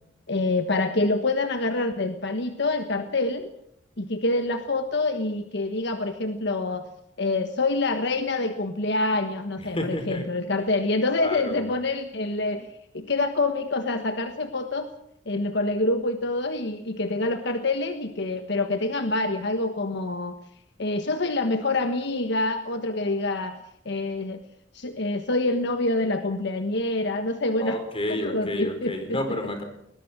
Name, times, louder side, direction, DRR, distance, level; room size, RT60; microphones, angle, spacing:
voice 1, 0.3-3.5 4.0-6.9 7.2-12.7 12.9-14.9 15.3-20.3 20.8-23.6 23.8-24.4 24.7-27.8 28.1-29.2, left 2 dB, 65° left, 7 dB, 1.4 m, -26 dB
voice 2, 9.6-10.3 11.2-11.7 27.6-29.6, left 1 dB, 30° left, 6 dB, 4.5 m, -30 dB
20.5 x 20.5 x 6.2 m, 0.74 s
head